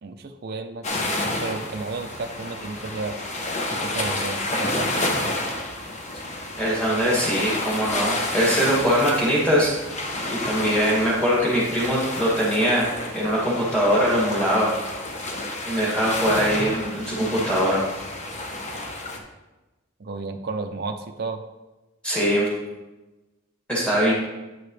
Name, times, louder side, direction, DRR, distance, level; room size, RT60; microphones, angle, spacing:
voice 1, 0.0-3.2 3.7-5.3 20.0-21.4, right 3 dB, 50° right, 4 dB, 0.5 m, -33 dB
sound 1, 0.8-19.2, left 2 dB, 35° left, 0.8 m, -30 dB
voice 2, 6.6-9.7 10.3-12.9 13.1-14.7 15.7-17.8 22.0-22.5 23.7-24.1, equal, 5° left, -6 dB, 2.2 m, -22 dB
9.2 x 6.7 x 3.2 m, 1.1 s
head